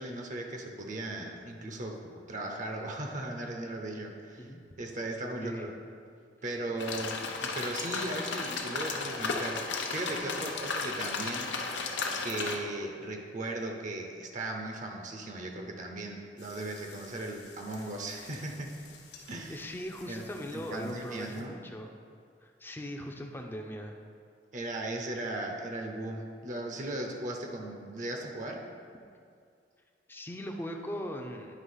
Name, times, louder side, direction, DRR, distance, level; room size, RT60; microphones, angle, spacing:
voice 1, 0.0-4.5 4.8-5.7 6.4-9.6 9.9-11.6 12.2-18.7 19.3-19.6 20.1-21.6 24.5-28.6, right 1 dB, 45° right, 2 dB, 0.7 m, -37 dB
voice 2, 5.4-5.8 19.5-21.9 22.4-24.0 30.1-31.5, equal, 10° left, 2 dB, 0.5 m, -39 dB
sound 1, 6.8-12.6, left 4 dB, 90° left, 0.7 m, -34 dB
sound 2, 16.4-21.4, left 5 dB, 65° left, 1.0 m, -54 dB
9.3 x 3.4 x 5.5 m, 2.3 s
head